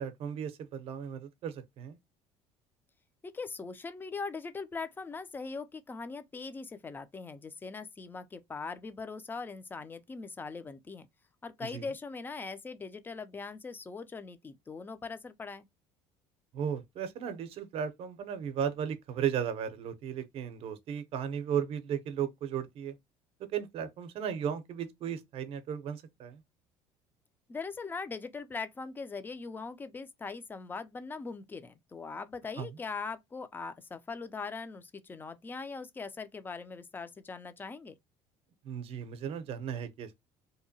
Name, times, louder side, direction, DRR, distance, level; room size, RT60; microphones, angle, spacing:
voice 1, 0.0-2.0 11.6-11.9 16.5-23.0 23.5-26.4 32.6-32.7 38.6-40.1, right 8 dB, 55° right, 0.6 m, -35 dB
voice 2, 3.2-11.1 11.4-15.7 27.5-38.0, left 4 dB, 15° left, 0.4 m, -41 dB
2.8 x 2.1 x 2.6 m
cardioid pair, 110°, 12 cm